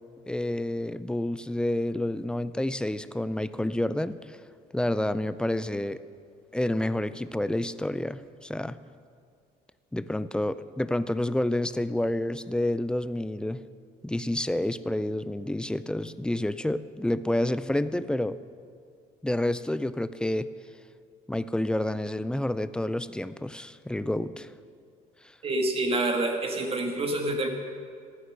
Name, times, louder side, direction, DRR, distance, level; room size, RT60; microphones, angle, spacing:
voice 1, 0.3-4.4 4.7-6.0 6.5-8.8 9.9-13.6 14.0-18.4 19.2-20.5 21.3-24.5, left 1 dB, 5° left, 14 dB, 0.4 m, -29 dB
voice 2, 25.4-27.5, right 2 dB, 35° right, 4 dB, 1.8 m, -27 dB
14.0 x 9.6 x 6.4 m, 2.2 s
cardioid pair, 110°, 17 cm